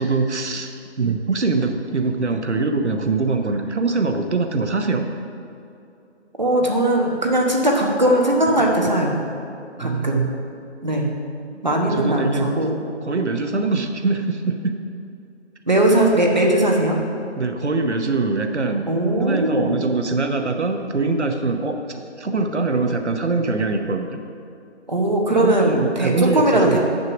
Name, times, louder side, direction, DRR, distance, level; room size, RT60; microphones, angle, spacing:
voice 1, 0.0-5.1 9.8-10.3 11.5-12.5 13.0-14.7 17.4-18.8 19.2-24.2 25.3-26.8, right 3 dB, 75° right, 6 dB, 0.9 m, -23 dB
voice 2, 6.4-9.2 9.8-10.2 10.8-11.1 11.6-12.7 15.7-17.0 18.9-19.8 24.9-26.8, right 1 dB, 40° right, 0 dB, 1.1 m, -19 dB
7.2 x 6.6 x 5.9 m, 2.6 s
figure-of-eight pair, 180°, 35 cm